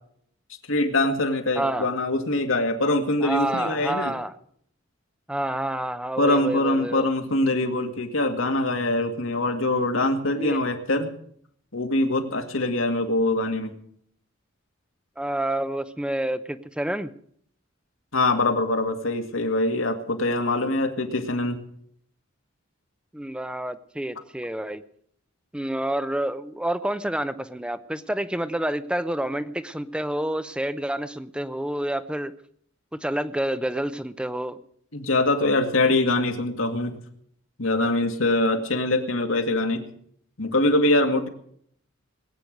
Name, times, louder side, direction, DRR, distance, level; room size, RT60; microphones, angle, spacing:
voice 1, 0.7-4.1 6.2-11.1 11.7-13.7 18.1-21.6 34.9-37.0 37.6-39.8 40.4-41.3, left 2 dB, 80° left, 5 dB, 2.1 m, -23 dB
voice 2, 1.5-1.9 3.2-4.3 5.3-7.1 10.3-10.6 15.2-17.1 23.1-24.8 25.5-32.3 33.0-34.6, right 1 dB, 5° right, 13 dB, 0.8 m, -28 dB
20.5 x 9.0 x 6.6 m, 0.64 s
head